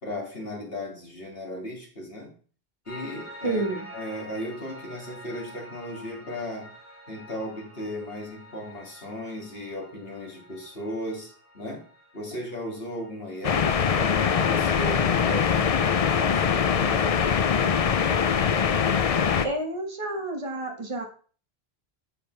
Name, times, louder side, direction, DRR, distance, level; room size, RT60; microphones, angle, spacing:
voice 1, 0.0-2.3 2.9-6.7 7.1-11.8 12.1-17.1, left 1 dB, 65° left, -1 dB, 2.6 m, -36 dB
Piano, 2.9-14.1, equal, 15° left, 3.0 m, -47 dB
voice 2, 3.4-3.8 19.4-21.0, right 2 dB, 30° right, 2 dB, 1.5 m, -29 dB
sound 1, 13.4-19.5, left 7 dB, 45° left, 0.5 m, -23 dB
10.0 x 7.0 x 3.3 m, 0.42 s
omnidirectional pair, 1.0 m